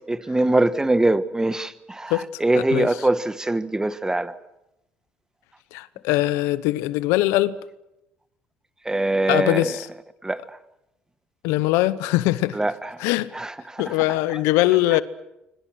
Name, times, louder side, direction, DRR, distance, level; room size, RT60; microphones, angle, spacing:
voice 1, 0.1-4.3 8.8-9.8 10.2-10.4 12.5-13.0 13.3-13.9, right 2 dB, 15° right, 1.5 m, -23 dB
voice 2, 5.7-7.5 9.3-9.9 11.4-12.6 13.0-13.3 13.8-15.0, left 17 dB, 85° left, 0.8 m, -21 dB
26.0 x 25.5 x 6.4 m
supercardioid pair, 70°, 5 cm